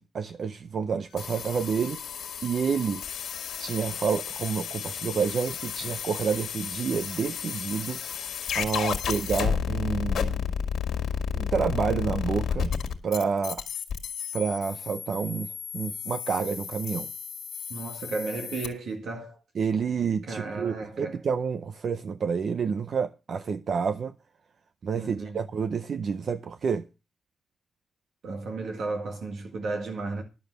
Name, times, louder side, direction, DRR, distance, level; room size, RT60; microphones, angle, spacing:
voice 1, 0.0-3.0 3.6-10.4 11.4-12.7 13.0-13.6 14.3-17.1 19.5-24.1 24.8-26.8, right 6 dB, 50° right, 0.6 m, -29 dB
sound 1, 1.2-18.7, left 8 dB, 80° left, 1.9 m, -32 dB
voice 2, 17.7-19.4 20.3-21.2 24.9-25.4 28.2-30.2, right 3 dB, 70° right, 1.8 m, -34 dB
11.5 x 7.0 x 6.5 m
wide cardioid pair, 155°, 0 cm